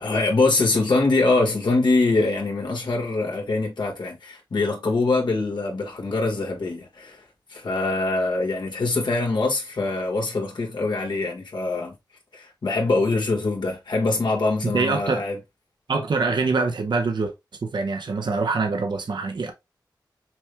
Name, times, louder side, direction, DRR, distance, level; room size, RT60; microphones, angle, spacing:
voice 1, 0.0-7.2 7.5-11.9 12.3-15.3, left 3 dB, 80° left, 1.6 m, -23 dB
voice 2, 14.6-15.2 15.9-17.3 17.6-19.5, right 4 dB, 75° right, 0.8 m, -24 dB
6.0 x 2.3 x 3.3 m
wide cardioid pair, 65°, 8 cm